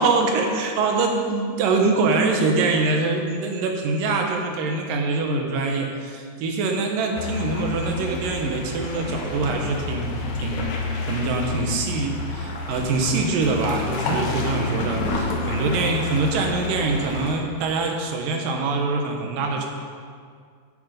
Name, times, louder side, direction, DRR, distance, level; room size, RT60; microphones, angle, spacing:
voice 1, 0.0-10.7 11.1-19.7, right 3 dB, 85° right, 2 dB, 2.7 m, -24 dB
sound 1, 7.2-17.3, left 2 dB, 70° left, 2.4 m, -29 dB
9.2 x 7.9 x 5.1 m, 2.1 s
omnidirectional pair, 3.8 m